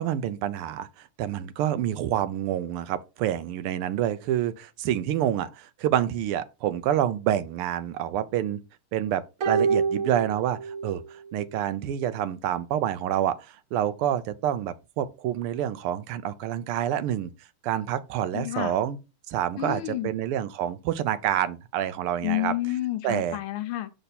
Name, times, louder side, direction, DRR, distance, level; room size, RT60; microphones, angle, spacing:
voice 1, 0.0-8.6 8.9-17.3 17.6-19.0 19.3-22.5 23.0-23.4, right 11 dB, 85° right, 1.6 m, -28 dB
sound 1, 9.4-11.0 11.3-11.4, right 5 dB, 50° right, 1.0 m, -26 dB
voice 2, 18.3-18.8 19.6-20.1 22.2-23.9, left 15 dB, 75° left, 1.6 m, -30 dB
6.8 x 4.4 x 4.1 m
omnidirectional pair, 2.4 m